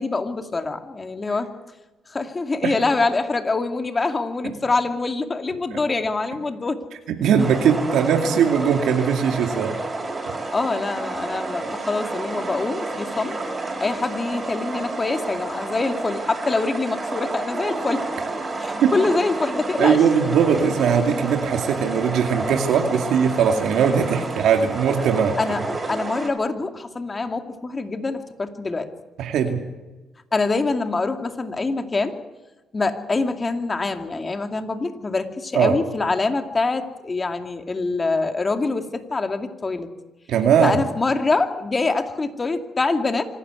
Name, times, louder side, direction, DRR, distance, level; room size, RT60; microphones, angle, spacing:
voice 1, 0.0-1.5 2.1-6.8 10.5-13.4 13.8-18.0 18.6-20.0 25.4-25.6 25.9-28.9 30.3-32.2 32.7-39.9 40.6-43.2, left 3 dB, 30° left, 6 dB, 2.3 m, -25 dB
voice 2, 7.1-9.8 18.8-18.9 19.8-25.4 29.2-29.6 35.5-35.8 40.3-40.8, right 7 dB, 80° right, 4 dB, 2.3 m, -20 dB
sound 1, 7.4-26.3, right 2 dB, 25° right, 5.9 m, -30 dB
26.0 x 12.5 x 9.6 m, 1.1 s
cardioid pair, 90°, 0 cm